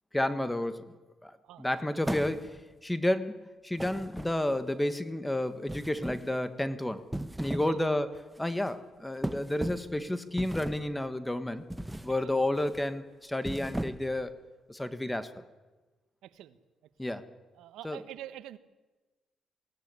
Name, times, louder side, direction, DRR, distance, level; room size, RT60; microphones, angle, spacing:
voice 1, 0.1-1.0 1.2-7.0 7.4-8.1 8.4-11.6 12.0-14.3 14.7-15.3 17.0-17.2 17.8-18.0, left 1 dB, 10° left, 11 dB, 1.5 m, -31 dB
voice 2, 1.4-1.9 7.5-7.8 12.2-12.4 16.2-16.6 17.0-17.1 17.5-18.6, right 12 dB, 85° right, 13 dB, 1.2 m, -46 dB
sound 1, 2.0-2.7 3.8-4.7 5.7-6.4 7.0-7.8 8.1-8.4 9.2-10.0 10.4-10.9 11.7-12.2 12.5-12.8 13.3-14.2, right 1 dB, 5° right, 1.0 m, -37 dB
22.0 x 17.5 x 9.6 m, 1.2 s
cardioid pair, 90°, 0 cm